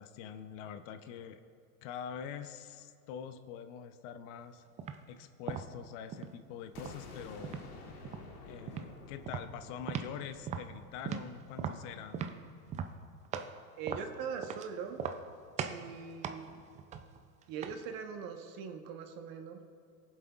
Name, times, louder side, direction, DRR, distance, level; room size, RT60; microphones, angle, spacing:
voice 1, 0.0-1.4 1.8-4.6 5.1-7.7 8.4-12.3, left 8 dB, 55° left, 10 dB, 0.7 m, -45 dB
sound 1, 4.8-5.0 5.5-6.4 6.8-7.7 8.0-8.3 8.7-8.9 9.3-10.2 10.5-13.6 13.9-14.7 15.0-15.3 15.6-15.9 16.2-17.9, right 7 dB, 20° right, 0.3 m, -39 dB
sound 2, 6.7-12.5, left 3 dB, 85° left, 1.7 m, -52 dB
voice 2, 13.8-15.0 15.7-16.5 17.5-19.6, right 6 dB, 50° right, 5 dB, 1.2 m, -41 dB
20.5 x 7.5 x 2.4 m, 2.3 s
hypercardioid pair, 105°, 44 cm